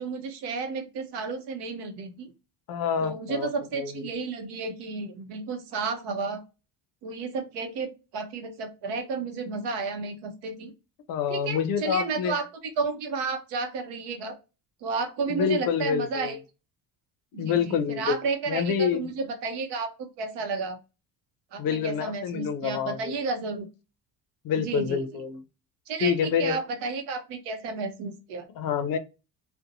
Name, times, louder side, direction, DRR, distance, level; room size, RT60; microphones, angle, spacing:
voice 1, 0.0-2.3 3.0-6.4 7.0-10.7 11.3-14.4 14.8-16.4 17.3-20.8 21.5-23.7 24.6-25.2 25.9-28.5, right 4 dB, 85° right, 7 dB, 0.8 m, -32 dB
voice 2, 2.7-4.1 11.1-12.3 15.3-16.4 17.3-18.2 18.5-19.1 21.6-23.1 24.4-25.4 26.0-26.6 28.6-29.0, left 7 dB, 55° left, 11 dB, 0.5 m, -27 dB
2.5 x 2.1 x 2.7 m, 0.30 s
cardioid pair, 180°, 41 cm